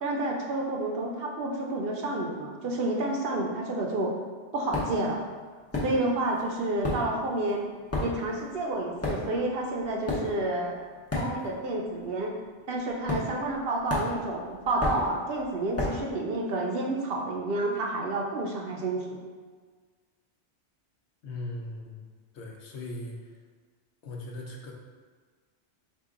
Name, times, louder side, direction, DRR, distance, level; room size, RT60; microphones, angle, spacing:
voice 1, 0.0-4.1 4.5-5.2 5.8-7.6 8.0-10.8 11.1-12.3 12.7-19.2, right 2 dB, 60° right, -1 dB, 0.7 m, -30 dB
sound 1, 4.7-5.1 5.7-6.4 6.6-11.7 12.0-12.3 13.1-13.6 13.9-16.1, left 2 dB, 15° left, 0.6 m, -33 dB
voice 2, 21.2-22.1 22.3-23.3 24.0-24.7, left 2 dB, 70° left, -1 dB, 0.9 m, -39 dB
4.6 x 2.5 x 3.6 m, 1.5 s
omnidirectional pair, 1.2 m